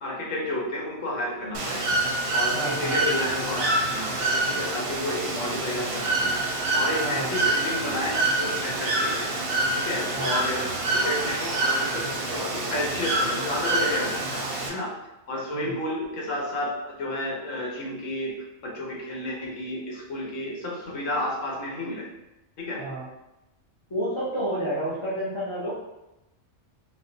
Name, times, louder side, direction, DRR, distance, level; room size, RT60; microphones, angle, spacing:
voice 1, 0.0-1.9 2.3-6.3 6.7-9.3 9.7-10.6 10.9-14.9 15.3-18.3 18.6-22.1 22.6-22.8, left 1 dB, 80° left, -2 dB, 1.2 m, -31 dB
Bird / Water, 1.5-14.7, right 2 dB, 60° right, 0.7 m, -26 dB
voice 2, 2.5-3.0 7.0-7.3 10.1-10.4 15.5-15.7 22.8-23.1 23.9-25.7, right 1 dB, 30° left, -9 dB, 0.6 m, -30 dB
4.2 x 2.0 x 2.7 m, 0.95 s
omnidirectional pair, 1.3 m